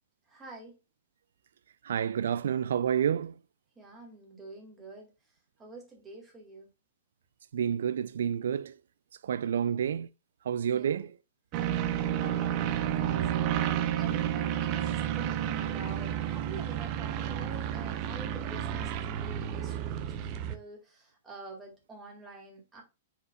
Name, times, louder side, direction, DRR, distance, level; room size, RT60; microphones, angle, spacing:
voice 1, 0.3-0.7 3.8-5.1 5.6-6.7 9.6-9.9 10.7-11.1 12.2-12.6 12.9-22.8, right 2 dB, 10° right, 2.1 m, -47 dB
voice 2, 1.8-3.3 7.5-8.7 9.2-10.1 10.5-11.1, right 8 dB, 85° right, 0.4 m, -29 dB
sound 1, 11.5-20.6, right 10 dB, 30° right, 0.6 m, -31 dB
7.9 x 5.0 x 2.4 m
supercardioid pair, 165°, 0 cm